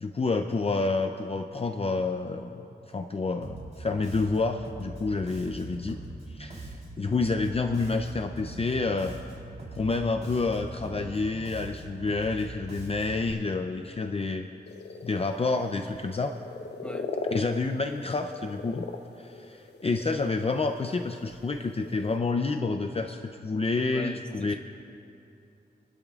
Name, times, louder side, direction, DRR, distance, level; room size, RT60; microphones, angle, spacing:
voice 1, 0.0-6.0 6.3-9.1 9.7-14.5 15.0-16.3 17.3-18.8 19.2-24.5, left 3 dB, 35° left, 5 dB, 0.5 m, -29 dB
Bass guitar, 3.4-13.3, right 2 dB, 40° right, 3.4 m, -42 dB
sound 1, 14.7-15.5 15.8-21.1 21.3-22.2, left 3 dB, 70° left, 0.9 m, -39 dB
voice 2, 16.8-17.2 23.9-24.5, equal, 5° left, 3 dB, 0.9 m, -40 dB
28.5 x 12.0 x 2.4 m, 2.7 s
wide cardioid pair, 115°, 18 cm